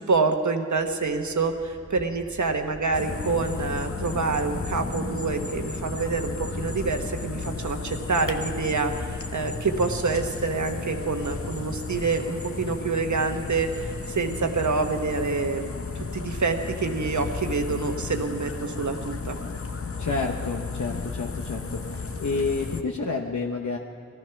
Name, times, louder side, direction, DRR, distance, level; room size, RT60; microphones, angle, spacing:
voice 1, 0.0-15.8 16.1-19.4, right 4 dB, 80° right, 5 dB, 1.3 m, -27 dB
sound 1, 0.8-12.4, right 1 dB, 30° right, 1.6 m, -43 dB
sound 2, 2.9-22.8, left 4 dB, 50° left, 0.9 m, -34 dB
voice 2, 20.0-23.8, left 4 dB, 80° left, 0 dB, 1.0 m, -29 dB
18.5 x 13.5 x 5.9 m, 2.5 s
wide cardioid pair, 55°, 29 cm